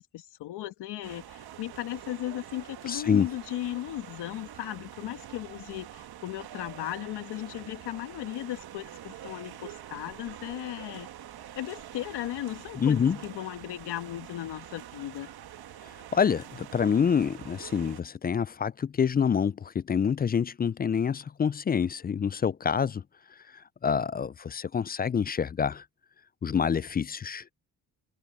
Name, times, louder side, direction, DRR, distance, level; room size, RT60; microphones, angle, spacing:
voice 1, 0.0-11.1 11.5-15.3, left 14 dB, 85° left, 1.6 m, -36 dB
sound 1, 1.0-18.0, right 11 dB, 70° right, 1.4 m, -46 dB
voice 2, 2.9-3.3 12.8-13.2 16.1-23.0 23.5-25.8 26.4-27.4, left 7 dB, 25° left, 0.3 m, -27 dB
open air
supercardioid pair, 60°, 39 cm